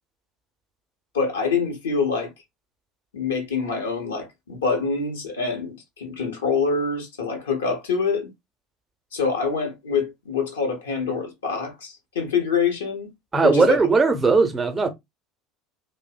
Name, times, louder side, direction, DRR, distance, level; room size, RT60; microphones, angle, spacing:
voice 1, 1.1-2.3 3.1-8.3 9.1-13.1 13.4-13.8, left 5 dB, 70° left, 0.7 m, -25 dB
voice 2, 13.3-14.9, right 4 dB, 20° right, 0.6 m, -18 dB
2.6 x 2.0 x 2.3 m
figure-of-eight pair, 65°, 0 cm